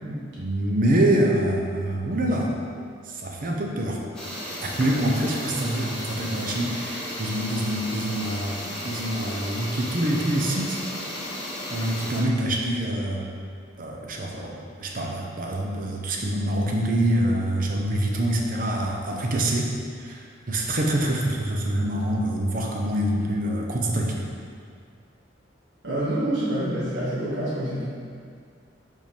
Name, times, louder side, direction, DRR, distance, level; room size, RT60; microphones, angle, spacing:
voice 1, 0.4-2.5 3.0-4.0 4.6-8.5 8.8-10.8 11.7-13.3 13.8-19.7 20.0-24.2, right 1 dB, 45° right, 0 dB, 0.7 m, -25 dB
sound 1, 4.1-12.2, equal, 5° left, 1.0 m, -34 dB
voice 2, 25.8-27.8, right 1 dB, 70° right, -9 dB, 1.5 m, -27 dB
5.3 x 3.7 x 5.1 m, 2.2 s
head